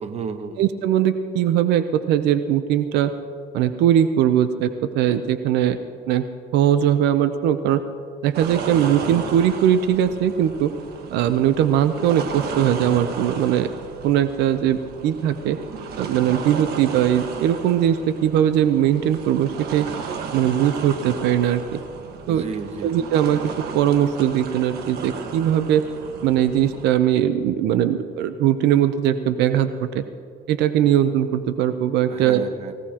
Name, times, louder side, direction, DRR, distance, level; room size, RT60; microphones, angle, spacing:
voice 1, 0.0-0.6 22.3-23.0 32.1-32.7, right 5 dB, 40° right, 8 dB, 1.1 m, -32 dB
voice 2, 0.6-3.1 3.5-5.8 6.1-6.2 6.5-7.8 8.2-10.7 11.1-13.7 14.0-15.6 16.0-19.9 20.3-21.8 22.3-22.4 22.8-23.4 23.7-25.8 26.2-30.0 30.5-32.4, right 10 dB, 85° right, 10 dB, 0.7 m, -20 dB
sound 1, 8.3-26.9, right 5 dB, 70° right, 1.5 m, -34 dB
24.0 x 16.5 x 2.9 m, 2.3 s
cardioid pair, 110°, 17 cm